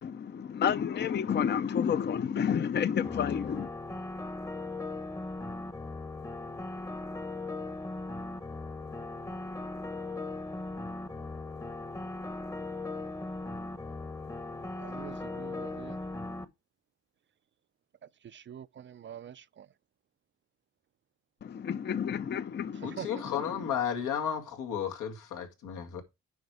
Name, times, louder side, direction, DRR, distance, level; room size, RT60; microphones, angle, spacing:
voice 1, 0.0-3.7 21.4-23.4, left 8 dB, 35° left, 0.6 m, -30 dB
sound 1, 3.0-16.4, left 2 dB, 10° left, 0.9 m, -38 dB
voice 2, 14.8-16.0 18.3-19.7 23.0-23.1, right 9 dB, 40° right, 0.5 m, -45 dB
voice 3, 22.8-26.0, left 8 dB, 80° left, 2.0 m, -33 dB
9.4 x 5.1 x 4.8 m
cardioid pair, 90°, 30 cm